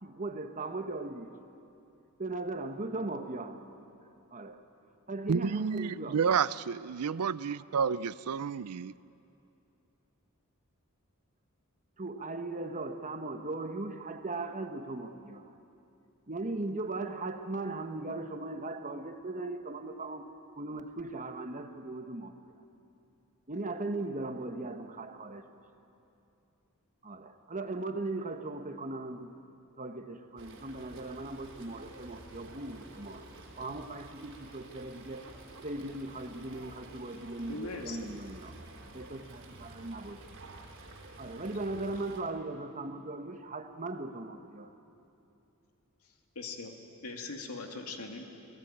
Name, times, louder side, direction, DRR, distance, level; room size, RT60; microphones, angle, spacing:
voice 1, 0.0-1.4 2.2-3.6 4.3-4.6 5.1-6.2 7.4-7.6 12.0-15.5 16.3-22.4 23.5-25.5 27.0-29.3 29.8-33.3 33.6-35.4 35.6-38.5 38.9-40.4 41.2-44.7, right 2 dB, 35° right, 7 dB, 1.3 m, -38 dB
voice 2, 5.3-8.9, right 6 dB, 85° right, 18 dB, 0.5 m, -30 dB
Fowl, 30.4-42.2, right 2 dB, 55° right, 3.3 m, -50 dB
voice 3, 37.5-38.0 46.3-46.7 47.0-48.3, left 3 dB, 80° left, 3 dB, 2.5 m, -40 dB
28.5 x 17.5 x 9.1 m, 2.7 s
head